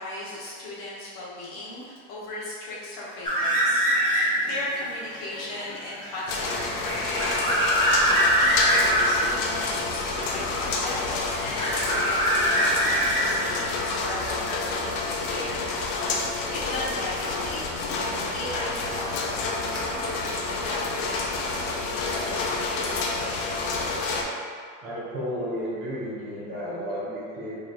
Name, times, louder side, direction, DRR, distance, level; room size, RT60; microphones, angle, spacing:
voice 1, 0.0-7.7 7.9-11.1 11.4-23.7, left 1 dB, 60° left, -7 dB, 1.3 m, -37 dB
sound 1, 3.2-4.5 4.9-9.2 10.2-11.0 11.3-13.7, equal, 15° left, 1.0 m, -23 dB
sound 2, 6.3-24.2, left 3 dB, 85° left, 0.7 m, -29 dB
voice 2, 24.8-27.6, equal, 45° right, -8 dB, 1.2 m, -32 dB
5.0 x 3.1 x 2.6 m, 2.1 s
cardioid pair, 160°, 30 cm